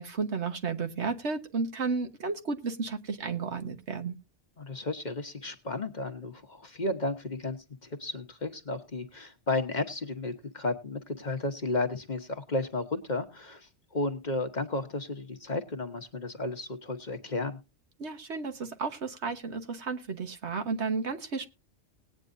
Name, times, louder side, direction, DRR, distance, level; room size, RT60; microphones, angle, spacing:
voice 1, 0.0-4.1 18.0-21.5, right 4 dB, 65° right, 7 dB, 1.5 m, -33 dB
voice 2, 4.6-7.6 7.8-17.6, left 2 dB, 40° left, 7 dB, 1.1 m, -33 dB
19.5 x 9.2 x 2.6 m, 0.28 s
omnidirectional pair, 1.2 m